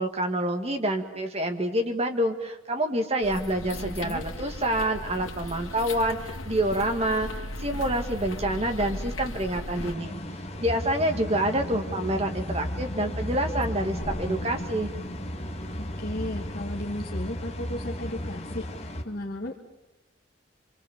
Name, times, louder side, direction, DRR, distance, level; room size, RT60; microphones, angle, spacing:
voice 1, 0.0-10.1 10.6-14.9, right 1 dB, 30° right, 5 dB, 2.0 m, -27 dB
sound 1, 3.2-9.9, left 1 dB, 80° left, 2.3 m, -37 dB
voice 2, 3.6-4.2 15.8-19.6, left 1 dB, 45° left, 0 dB, 1.4 m, -35 dB
sound 2, 9.7-19.0, equal, 30° left, 1.9 m, -34 dB
25.5 x 24.5 x 7.3 m, 0.97 s
head